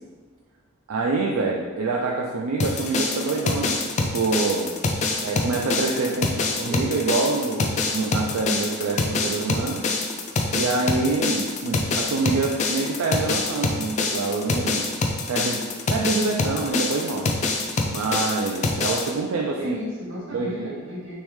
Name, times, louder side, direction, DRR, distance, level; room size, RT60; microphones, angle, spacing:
voice 1, 0.9-4.7 5.2-9.8 10.5-14.9 15.3-15.6 15.9-17.3 17.9-19.8 20.3-20.7, right 3 dB, 80° right, -1 dB, 0.4 m, -26 dB
sound 1, 2.6-19.1, left 3 dB, 35° left, 0.3 m, -25 dB
voice 2, 6.1-6.9 19.5-21.1, equal, 60° right, -6 dB, 1.1 m, -35 dB
3.5 x 3.1 x 3.1 m, 1.4 s
head